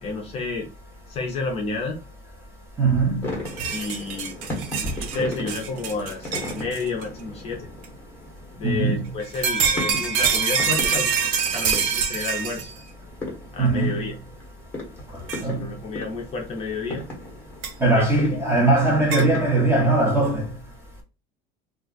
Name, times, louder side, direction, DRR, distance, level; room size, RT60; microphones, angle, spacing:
voice 1, 0.0-0.7 1.1-2.0 3.7-4.5 5.0-7.7 8.6-12.7 13.5-14.1 15.2-17.0 17.9-18.4, left 3 dB, 30° left, 0.5 m, -31 dB
voice 2, 2.8-3.2 8.6-9.0 13.6-14.0 15.4-15.6 17.8-20.5, right 2 dB, 10° right, 0.8 m, -20 dB
sound 1, 3.2-19.7, left 1 dB, 10° left, 1.1 m, -37 dB
sound 2, 3.5-7.0 7.8-7.9 9.2-12.8 13.7-13.8 15.3-15.4 17.6-17.7 19.1-19.3, right 6 dB, 70° right, 0.6 m, -25 dB
2.4 x 2.3 x 3.7 m
cardioid pair, 165°, 21 cm